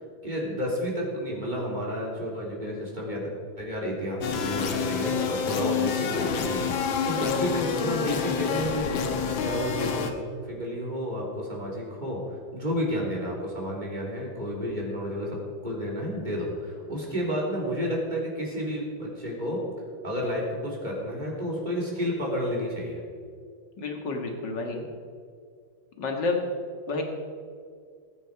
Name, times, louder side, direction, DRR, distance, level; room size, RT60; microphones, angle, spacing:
voice 1, 0.2-3.3 3.6-9.0 9.4-10.1 10.4-19.6 20.0-23.0, equal, 20° right, -3 dB, 3.3 m, -31 dB
sound 1, 4.2-10.1, left 6 dB, 80° left, 1.8 m, -28 dB
voice 2, 23.8-24.9 26.0-26.4 26.9-27.0, left 3 dB, 60° left, 2 dB, 2.4 m, -29 dB
20.0 x 9.2 x 4.7 m, 2.2 s
omnidirectional pair, 2.1 m